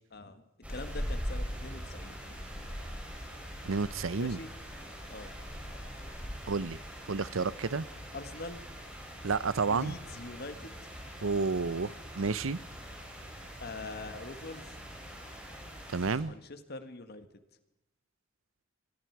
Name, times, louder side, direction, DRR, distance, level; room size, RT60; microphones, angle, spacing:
voice 1, 0.1-0.4 0.7-2.1 4.2-4.6 5.1-5.3 8.1-8.6 9.7-10.8 13.6-14.7 16.2-17.3, left 2 dB, 50° left, 9 dB, 1.7 m, -43 dB
sound 1, 0.6-16.2, equal, 5° right, 7.4 m, -42 dB
voice 2, 3.6-4.4 6.5-6.8 7.1-7.9 9.2-9.9 11.2-12.6 15.9-16.3, right 4 dB, 80° right, 18 dB, 0.7 m, -30 dB
25.5 x 22.0 x 4.8 m, 0.92 s
head